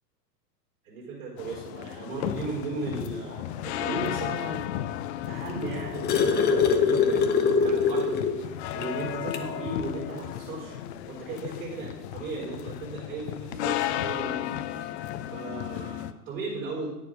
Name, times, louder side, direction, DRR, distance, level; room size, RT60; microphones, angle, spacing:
voice 1, 0.8-4.7 5.3-10.8 11.1-14.9 15.3-16.9, right 2 dB, 60° right, -6 dB, 4.2 m, -36 dB
sound 1, 1.4-16.1, left 12 dB, 45° left, 0.6 m, -34 dB
sound 2, 5.7-8.4 8.8-8.9 9.3-9.5 10.6-10.7, left 5 dB, 20° left, 0.9 m, -23 dB
10.0 x 7.2 x 4.9 m, 0.98 s
figure-of-eight pair, 95°, 50 cm